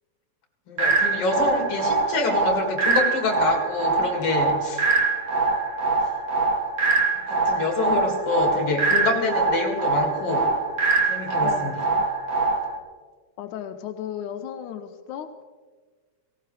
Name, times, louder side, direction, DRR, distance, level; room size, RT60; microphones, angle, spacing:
voice 1, 0.7-4.8 7.3-10.5 11.1-11.8, left 3 dB, 50° left, 1 dB, 3.2 m, -26 dB
sound 1, 0.8-12.8, right 3 dB, 55° right, 1.0 m, -23 dB
voice 2, 11.4-12.0 13.4-15.4, left 9 dB, 90° left, 6 dB, 2.2 m, -35 dB
18.0 x 17.5 x 3.4 m, 1.5 s
omnidirectional pair, 3.4 m